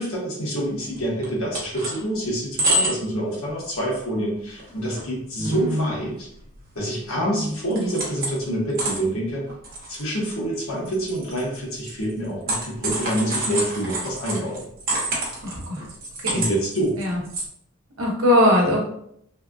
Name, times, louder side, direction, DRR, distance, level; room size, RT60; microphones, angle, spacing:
voice 1, 0.0-6.3 6.7-9.4 9.9-14.6 16.3-17.0, right 1 dB, 85° left, -4 dB, 1.2 m, -27 dB
sound 1, 1.0-2.0 2.4-3.1 3.5-3.7 4.1-4.2 4.5-5.1 5.4-5.5 6.0-7.1 7.4-8.4 8.7-17.4, right 1 dB, 45° right, 1.0 m, -28 dB
voice 2, 5.4-5.8 7.2-7.4 15.4-15.8 16.2-16.5 17.0-17.2 18.0-18.8, left 1 dB, 90° right, -1 dB, 0.9 m, -21 dB
3.2 x 2.3 x 2.5 m, 0.70 s
head